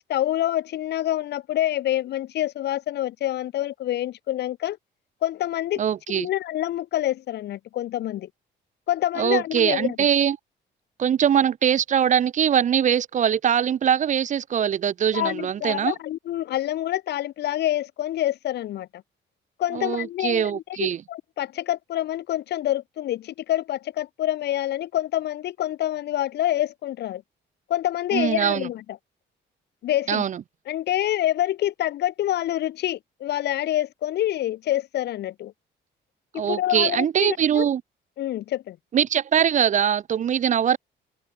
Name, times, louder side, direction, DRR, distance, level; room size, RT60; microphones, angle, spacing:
voice 1, 0.0-4.8 5.2-5.8 6.1-8.3 8.9-10.0 15.1-19.0 19.6-27.2 27.7-28.8 29.8-30.2 30.7-35.5 36.3-37.7 38.2-38.8, left 13 dB, 60° left, 0.4 m, -27 dB
voice 2, 5.8-6.3 9.2-10.4 11.0-15.9 19.7-21.0 28.1-28.7 30.1-30.4 36.4-37.8 38.9-40.8, right 9 dB, 40° right, 0.4 m, -22 dB
cardioid pair, 90°, 20 cm